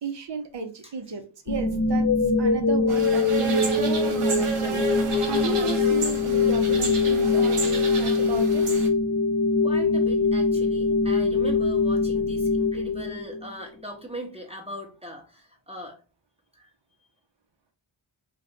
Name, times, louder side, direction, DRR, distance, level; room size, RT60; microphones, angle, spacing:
voice 1, 0.0-2.1 2.4-4.8 5.2-8.6, right 5 dB, 60° right, 6 dB, 0.8 m, -34 dB
sound 1, 1.5-13.5, left 4 dB, 35° left, 0.6 m, -23 dB
sound 2, 2.9-8.9, right 5 dB, 90° right, 0.9 m, -32 dB
voice 2, 9.6-16.0 16.5-16.7, equal, 10° right, 0 dB, 0.9 m, -40 dB
2.5 x 2.5 x 4.2 m, 0.34 s
wide cardioid pair, 60°, 50 cm